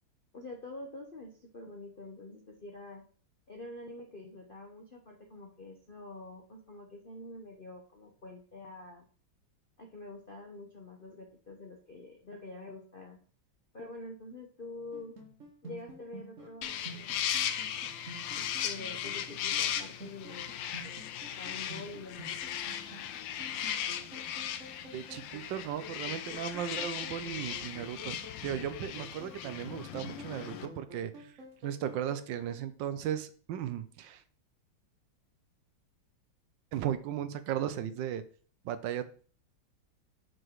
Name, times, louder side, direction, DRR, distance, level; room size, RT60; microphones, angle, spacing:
voice 1, 0.3-3.0 3.5-9.0 9.8-13.2 13.7-15.1 15.6-17.4 18.3-22.6, left 2 dB, 40° left, 0 dB, 0.7 m, -47 dB
sound 1, 14.9-32.5, right 1 dB, 40° right, 1.5 m, -50 dB
sound 2, 16.6-30.7, left 10 dB, 75° left, 1.3 m, -37 dB
voice 2, 24.9-31.3 31.6-34.2 36.7-38.2 38.6-39.0, right 10 dB, 75° right, 12 dB, 1.2 m, -36 dB
6.3 x 4.7 x 4.6 m, 0.42 s
omnidirectional pair, 2.2 m